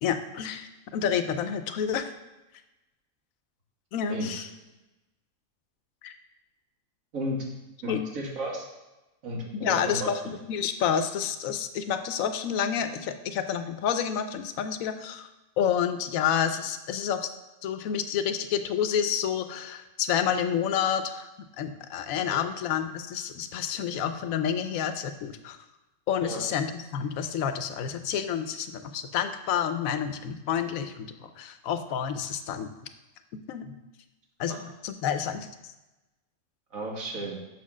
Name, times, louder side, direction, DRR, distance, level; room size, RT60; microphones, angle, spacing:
voice 1, 0.0-2.1 3.9-4.5 6.0-6.1 7.9-8.1 9.5-15.3 15.6-17.3 17.6-21.3 21.6-25.6 26.1-32.7 33.5-33.7 34.4-35.5, left 8 dB, 85° left, 9 dB, 1.0 m, -29 dB
voice 2, 7.1-7.5 7.8-8.7 9.2-10.1 22.3-22.4 26.2-26.4 34.5-34.6 36.7-37.4, right 1 dB, 80° right, -2 dB, 1.9 m, -33 dB
6.3 x 4.3 x 6.0 m, 1.0 s
omnidirectional pair, 1.4 m